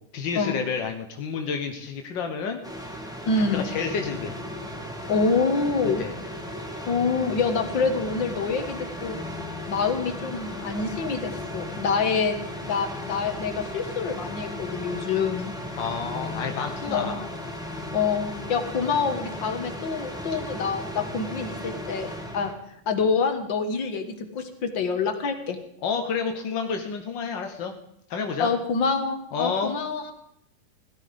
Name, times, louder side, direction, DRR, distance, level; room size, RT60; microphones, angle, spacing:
voice 1, 0.0-2.6 3.4-4.4 6.0-6.1 15.8-17.3 25.8-27.7 28.1-28.5 29.3-29.7, left 5 dB, 60° left, 4 dB, 1.2 m, -29 dB
sound 1, 2.6-22.5, left 1 dB, ahead, 1.4 m, -36 dB
voice 2, 3.3-3.7 5.1-6.0 6.9-9.3 9.7-12.4 12.6-15.5 16.9-17.2 17.9-22.1 22.3-22.5 22.9-25.6 28.4-30.1, left 5 dB, 45° left, 6 dB, 1.7 m, -26 dB
17.0 x 13.0 x 5.2 m, 0.73 s
omnidirectional pair, 3.6 m